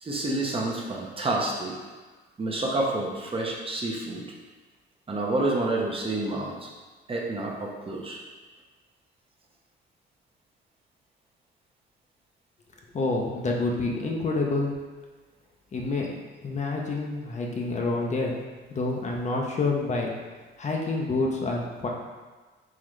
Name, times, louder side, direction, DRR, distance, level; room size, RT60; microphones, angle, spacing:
voice 1, 0.0-1.8 2.4-4.2 5.1-6.7 7.1-8.2, right 2 dB, 30° right, -2 dB, 0.7 m, -29 dB
voice 2, 12.9-14.7 15.7-16.1 16.4-18.4 18.7-20.1 20.6-21.9, left 3 dB, 35° left, -1 dB, 0.6 m, -27 dB
3.8 x 3.1 x 3.1 m, 1.3 s
cardioid pair, 90°, 20 cm